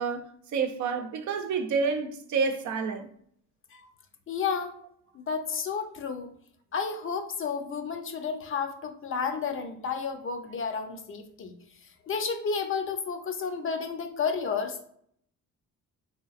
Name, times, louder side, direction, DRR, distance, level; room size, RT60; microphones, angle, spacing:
voice 1, 0.0-3.1, right 5 dB, 70° right, 0.6 m, -29 dB
voice 2, 4.3-4.7 5.1-6.3 6.7-11.5 12.0-14.8, left 5 dB, 45° left, 0.6 m, -31 dB
3.3 x 2.9 x 2.4 m
cardioid pair, 90°, 30 cm